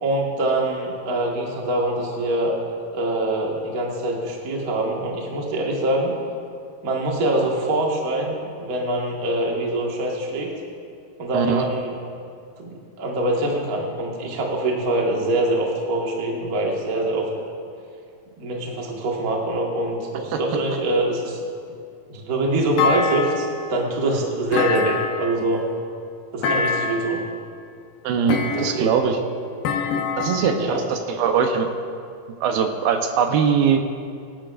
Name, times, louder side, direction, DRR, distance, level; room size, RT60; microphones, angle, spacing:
voice 1, 0.0-2.6 2.9-6.1 6.8-10.5 11.2-11.9 12.6-17.3 18.4-21.4 22.1-25.6 26.3-27.2 28.5-28.9 30.3-30.8, right 1 dB, 50° right, -1 dB, 1.1 m, -24 dB
voice 2, 11.3-11.6 28.0-29.2 30.2-31.7 32.4-33.8, right 7 dB, 80° right, 5 dB, 2.7 m, -21 dB
Thump thud, 22.8-23.7 24.5-25.4 26.4-27.2 28.3-29.0 29.6-30.7, left 5 dB, 75° left, 2.8 m, -25 dB
22.0 x 11.5 x 2.5 m, 2.4 s
omnidirectional pair, 4.4 m